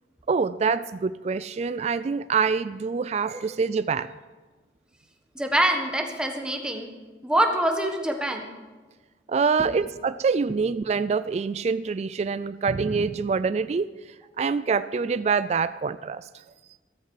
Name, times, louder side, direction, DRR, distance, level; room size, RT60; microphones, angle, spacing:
voice 1, 0.3-4.1 9.3-13.9 14.4-16.3, right 5 dB, 40° right, 14 dB, 0.3 m, -25 dB
voice 2, 5.3-6.9 7.2-8.5, right 1 dB, 5° right, 3 dB, 1.4 m, -25 dB
14.0 x 13.5 x 4.8 m, 1.3 s
head